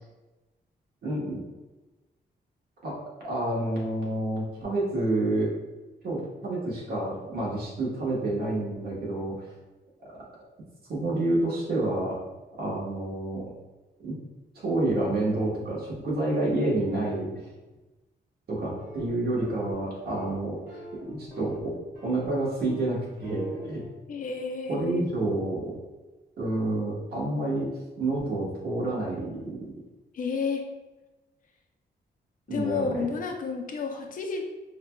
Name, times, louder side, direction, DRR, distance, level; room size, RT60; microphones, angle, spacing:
voice 1, 1.0-1.4 2.8-3.0 3.2-5.5 6.0-9.4 10.9-12.2 12.6-13.4 14.0-14.1 14.5-17.5 18.5-20.8 21.2-21.7 22.0-23.8 24.7-25.8 26.4-27.7 28.0-29.6 32.5-33.0, right 2 dB, 65° right, -5 dB, 1.2 m, -28 dB
sound 1, 18.8-19.1 19.4-19.7 20.1-20.3 20.7-21.6 21.9-22.3 22.6-22.9 23.2-23.8, equal, 40° right, 1.4 m, -42 dB
voice 2, 24.1-25.1 30.1-30.6 32.5-34.4, left 5 dB, 50° left, 3 dB, 0.4 m, -31 dB
4.9 x 2.2 x 2.2 m, 1.1 s
wide cardioid pair, 145°, 18 cm